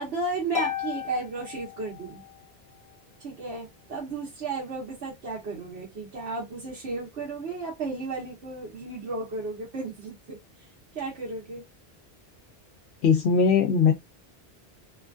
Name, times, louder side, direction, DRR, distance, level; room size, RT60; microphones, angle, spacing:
voice 1, 0.0-2.2 3.2-10.4 10.9-11.6, right 3 dB, 80° right, 1.3 m, -34 dB
Harp, 0.6-2.4, left 8 dB, 35° left, 0.8 m, -34 dB
voice 2, 13.0-13.9, left 6 dB, 80° left, 0.9 m, -20 dB
3.0 x 2.4 x 2.4 m
omnidirectional pair, 1.1 m